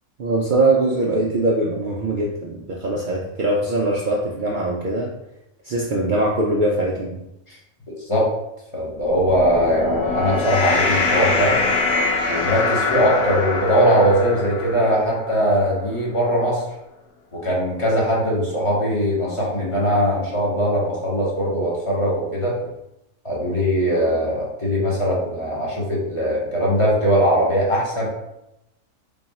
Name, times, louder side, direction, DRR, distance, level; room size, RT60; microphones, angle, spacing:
voice 1, 0.2-5.1 5.6-7.1, right 2 dB, 85° right, -3 dB, 0.4 m, -22 dB
voice 2, 8.7-11.6 12.3-16.6 17.3-22.6 23.2-28.1, equal, 30° left, -6 dB, 0.8 m, -20 dB
sound 1, 9.2-15.7, left 4 dB, 80° left, 1.2 m, -23 dB
3.5 x 2.3 x 4.0 m, 0.88 s
omnidirectional pair, 1.4 m